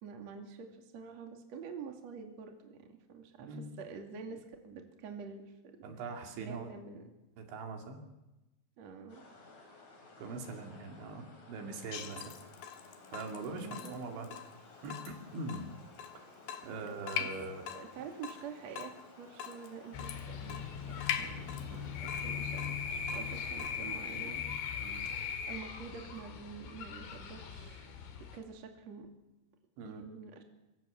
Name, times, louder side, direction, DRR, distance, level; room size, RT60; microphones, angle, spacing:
voice 1, 0.0-5.5 6.4-7.0 8.8-9.2 13.4-14.4 17.2-17.3 17.7-24.4 25.5-27.9 28.2-29.1 29.8-30.4, right 6 dB, 40° right, 3 dB, 3.1 m, -47 dB
voice 2, 5.8-6.7 7.4-8.0 10.2-12.4 13.1-14.3 14.8-15.7 16.6-17.6 21.6-21.9 24.8-25.1 29.8-30.0, right 3 dB, 70° right, 3 dB, 5.0 m, -42 dB
sound 1, 9.1-24.0, left 3 dB, 35° left, 5.4 m, -57 dB
Water tap faucet / Drip, 11.9-23.9, left 9 dB, 65° left, 3.3 m, -43 dB
sound 2, 19.9-28.4, left 7 dB, 85° left, 5.1 m, -40 dB
25.5 x 24.5 x 7.2 m, 1.0 s
omnidirectional pair, 5.6 m